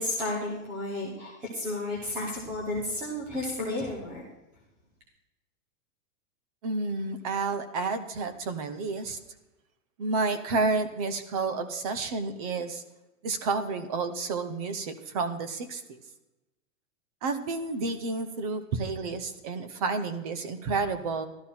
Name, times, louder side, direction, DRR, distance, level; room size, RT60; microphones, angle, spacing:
voice 1, 0.0-4.2, left 2 dB, 5° right, -2 dB, 0.4 m, -32 dB
voice 2, 6.6-9.2 10.0-12.8 13.2-16.0 17.2-21.3, right 3 dB, 30° right, 11 dB, 0.8 m, -30 dB
13.5 x 12.5 x 4.3 m, 0.98 s
supercardioid pair, 175°, 40 cm